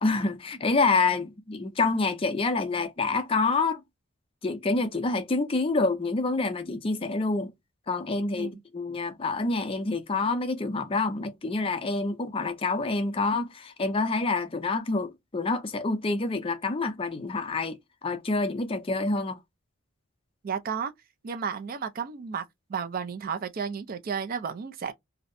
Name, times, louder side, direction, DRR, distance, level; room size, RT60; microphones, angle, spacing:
voice 1, 0.0-3.8 4.4-7.5 7.9-17.8 18.0-19.4, left 3 dB, 25° left, 0.4 m, -27 dB
voice 2, 20.4-20.9 21.2-24.9, right 6 dB, 40° right, 0.3 m, -33 dB
2.6 x 2.0 x 2.5 m
head